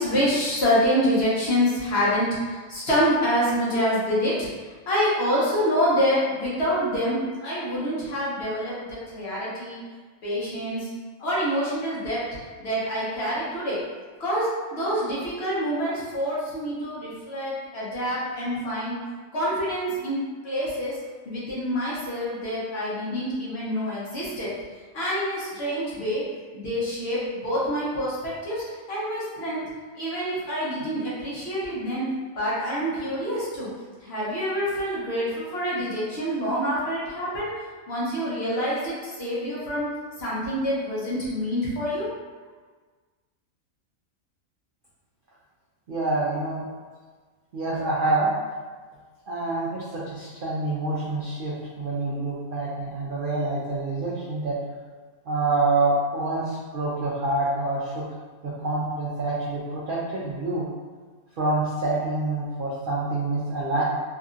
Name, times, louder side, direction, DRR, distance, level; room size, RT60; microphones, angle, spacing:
voice 1, 0.0-4.5 4.9-9.8 10.2-10.9 11.2-12.3 12.6-13.8 14.2-19.0 19.3-21.0 21.2-24.5 24.9-26.2 26.5-29.6 30.0-32.1 32.4-33.7 34.0-37.5 37.9-39.9 40.2-42.1, equal, 55° left, -8 dB, 0.9 m, -26 dB
voice 2, 45.9-46.6 47.5-48.3 49.3-54.6 55.3-58.0 58.4-60.7 61.4-63.8, right 2 dB, 80° right, -7 dB, 0.4 m, -26 dB
2.8 x 2.6 x 2.4 m, 1.4 s
omnidirectional pair, 1.5 m